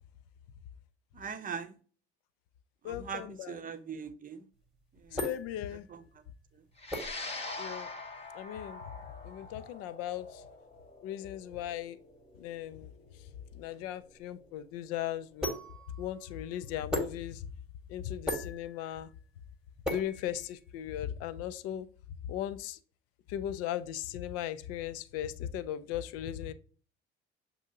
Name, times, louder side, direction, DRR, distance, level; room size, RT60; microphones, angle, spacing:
voice 1, 1.1-1.8 2.8-4.4 5.0-5.3 5.7-6.0, right 6 dB, 25° right, 8 dB, 0.7 m, -41 dB
voice 2, 2.8-3.6 5.1-5.8 7.6-7.9 8.3-8.8 9.2-10.3 11.0-12.0 12.4-12.9 13.6-15.6 16.0-17.4 17.9-19.1 19.9-21.9 22.3-22.8 23.3-26.5, left 11 dB, 50° left, 14 dB, 0.5 m, -37 dB
sound 1, 4.5-20.9, left 1 dB, ahead, 1.2 m, -41 dB
sound 2, 6.8-15.3, left 3 dB, 20° left, 0.8 m, -45 dB
7.0 x 2.7 x 2.7 m, 0.40 s
figure-of-eight pair, 55°, 31 cm